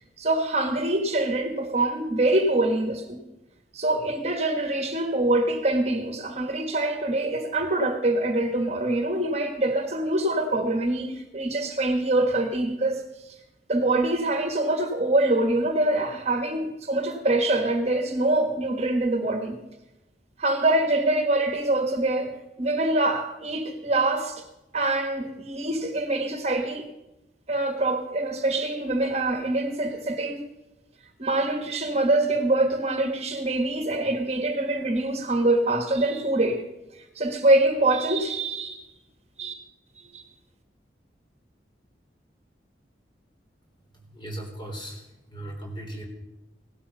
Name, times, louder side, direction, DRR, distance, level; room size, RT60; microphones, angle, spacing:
voice 1, 0.2-3.3 3.7-13.0 13.7-19.6 20.4-24.4 24.7-26.9 27.5-30.4 31.2-36.6 36.9-38.8 39.4-39.5 40.0-40.2, right 2 dB, 35° right, 1.4 m, -24 dB
voice 2, 43.9-46.0, right 1 dB, 25° left, 3.4 m, -38 dB
17.5 x 12.5 x 5.6 m
head